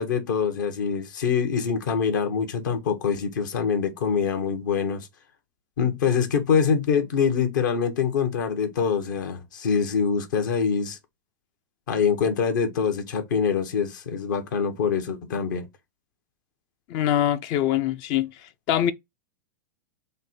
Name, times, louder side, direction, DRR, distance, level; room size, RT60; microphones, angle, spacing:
voice 1, 0.0-5.1 5.8-11.0 11.9-15.7, left 6 dB, 70° left, 0.9 m, -24 dB
voice 2, 16.9-18.3 18.7-18.9, left 11 dB, 45° left, 0.4 m, -23 dB
3.2 x 2.1 x 4.1 m
hypercardioid pair, 105°, 11 cm